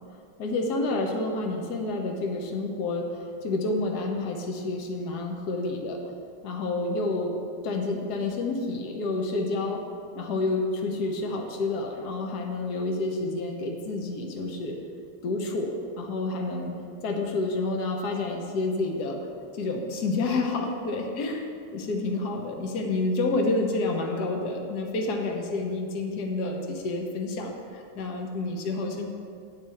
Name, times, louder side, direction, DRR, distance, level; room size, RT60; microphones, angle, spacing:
voice 1, 0.4-6.0 6.4-7.3 7.6-9.8 10.1-14.8 15.2-16.7 17.0-19.2 19.5-29.1, left 2 dB, 60° left, 2 dB, 1.5 m, -29 dB
8.9 x 5.6 x 7.7 m, 2.3 s
omnidirectional pair, 2.2 m